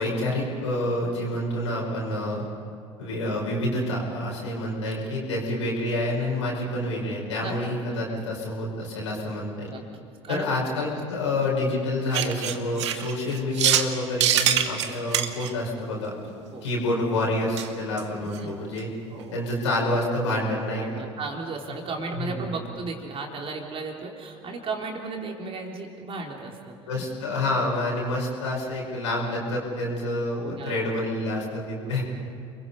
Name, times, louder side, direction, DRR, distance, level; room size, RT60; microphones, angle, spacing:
voice 1, 0.0-2.5 3.0-9.7 10.3-16.1 16.6-18.9 19.3-20.8 22.1-22.5 26.9-32.1, left 1 dB, 75° left, -3 dB, 5.2 m, -28 dB
voice 2, 9.6-10.5 16.5-16.7 18.2-18.5 19.1-19.4 20.8-27.0 30.3-31.0 31.8-32.0, right 3 dB, 35° right, 1 dB, 3.8 m, -35 dB
sound 1, 12.1-13.9 14.2-15.5 17.6-17.7 18.0-18.1 18.3-18.4 18.8-18.9, right 10 dB, 75° right, 1.2 m, -24 dB
29.5 x 21.5 x 5.5 m, 2.4 s
figure-of-eight pair, 70°, 15 cm